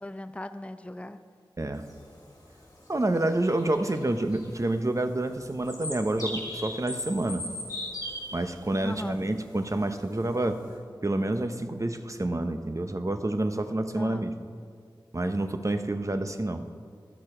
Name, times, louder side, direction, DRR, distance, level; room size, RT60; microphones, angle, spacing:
voice 1, 0.0-1.2 8.8-9.3 14.0-14.5, left 1 dB, 15° left, 10 dB, 0.5 m, -39 dB
sound 1, 1.8-10.8, left 1 dB, 45° left, 2.6 m, -39 dB
voice 2, 2.9-7.5 8.3-10.6 11.0-14.3 15.1-16.7, right 2 dB, 35° right, 8 dB, 0.7 m, -28 dB
12.5 x 6.7 x 4.9 m, 2.1 s
wide cardioid pair, 40°, 9 cm